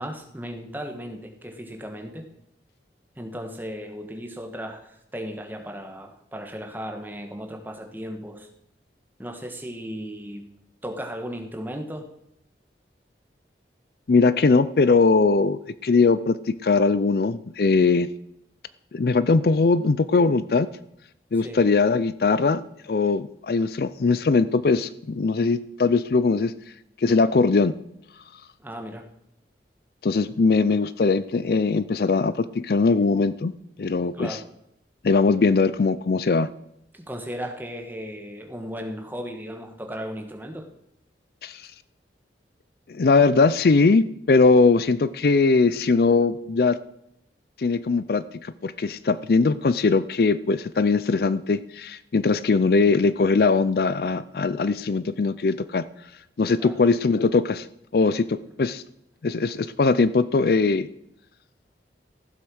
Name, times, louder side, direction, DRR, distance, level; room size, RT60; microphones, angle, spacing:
voice 1, 0.0-2.2 3.2-8.5 9.2-10.5 10.8-12.1 21.4-21.6 28.6-29.1 34.1-34.4 36.9-40.7 56.6-56.7, equal, 10° right, 5 dB, 1.4 m, -36 dB
voice 2, 14.1-18.1 18.9-20.7 21.3-26.5 27.0-27.7 30.0-33.5 33.8-34.4 35.0-36.5 41.4-41.6 42.9-46.8 47.6-55.9 56.4-57.7 57.9-58.8 59.2-60.9, left 4 dB, 55° left, 16 dB, 0.4 m, -21 dB
15.0 x 7.7 x 6.3 m, 0.78 s
head